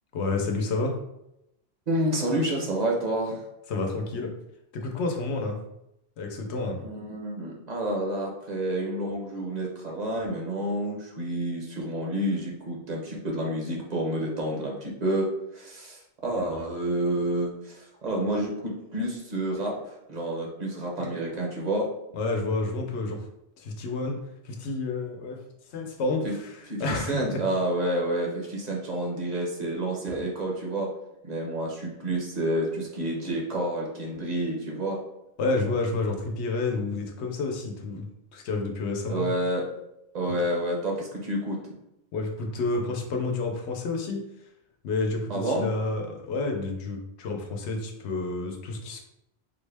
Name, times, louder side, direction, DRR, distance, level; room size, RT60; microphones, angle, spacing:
voice 1, 0.1-1.0 3.7-4.3 4.7-5.6 6.2-6.8 22.1-23.2 23.6-24.2 24.4-25.4 25.7-26.5 26.8-27.4 35.4-38.0 38.3-39.3 42.1-44.2 44.8-49.0, left 3 dB, 90° left, 2 dB, 0.9 m, -29 dB
voice 2, 1.9-3.4 6.8-21.9 26.2-26.3 26.7-30.9 31.2-35.0 39.1-39.7 40.1-41.7 45.3-45.7, right 1 dB, 45° right, -2 dB, 0.8 m, -29 dB
3.9 x 2.1 x 3.3 m, 0.84 s
omnidirectional pair, 1.1 m